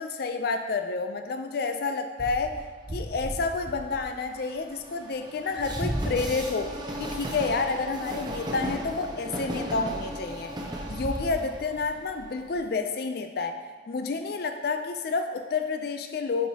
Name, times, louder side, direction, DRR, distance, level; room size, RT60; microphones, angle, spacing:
voice 1, 0.0-2.6 2.9-6.7 7.0-10.5 10.9-13.5 13.9-16.5, left 4 dB, 55° left, 7 dB, 0.4 m, -29 dB
Train, 2.2-12.6, right 1 dB, 20° right, 0.6 m, -35 dB
9.3 x 4.6 x 2.8 m, 1.5 s
head